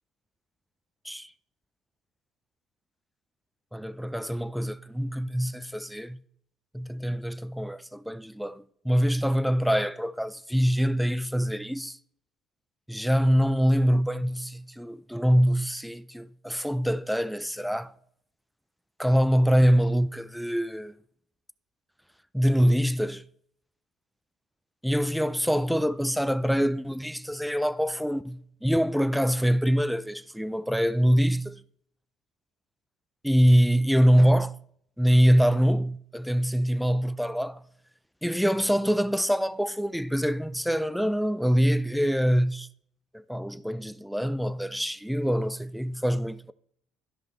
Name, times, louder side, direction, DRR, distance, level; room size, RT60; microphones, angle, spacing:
voice 1, 3.7-6.2 6.7-12.0 12.9-17.9 19.0-20.9 22.3-23.2 24.8-31.6 33.2-34.6 35.0-37.6 38.2-42.7 43.1-46.5, equal, ahead, 0.4 m, -24 dB
13.0 x 5.1 x 3.1 m
supercardioid pair, 75°, 0 cm